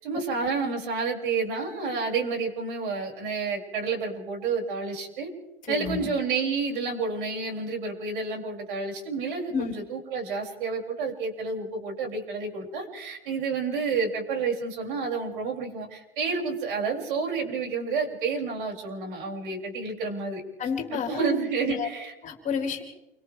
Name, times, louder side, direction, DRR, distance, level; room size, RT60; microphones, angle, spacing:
voice 1, 0.0-5.3 5.7-20.4 20.9-22.1, right 4 dB, 60° right, 0 dB, 7.0 m, -30 dB
voice 2, 5.6-6.1 9.5-9.7 20.6-21.3 21.6-21.9 22.2-22.8, left 6 dB, 25° left, 1 dB, 4.7 m, -30 dB
29.5 x 25.0 x 3.6 m, 0.93 s
hypercardioid pair, 105°, 29 cm